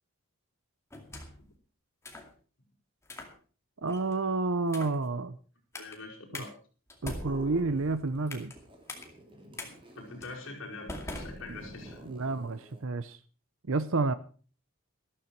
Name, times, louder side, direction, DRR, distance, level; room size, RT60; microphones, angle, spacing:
sound 1, 0.9-1.5 2.0-2.3 3.0-3.3 3.9-4.2 4.7-5.0 5.7-6.0 6.3-6.5 6.9-8.6 8.9-9.0 9.6-9.7 10.2-10.4 10.9-11.9, left 1 dB, 15° left, 2.3 m, -42 dB
voice 1, 3.8-5.4 6.3-6.4 7.0-8.5 11.5-11.6 12.0-13.2 13.7-14.1, right 3 dB, 65° right, 0.7 m, -30 dB
voice 2, 5.7-6.5 9.6-12.0, left 3 dB, 60° left, 5.1 m, -44 dB
sound 2, 7.0-8.2 8.5-12.9, equal, 25° right, 2.9 m, -50 dB
13.5 x 13.5 x 4.6 m
head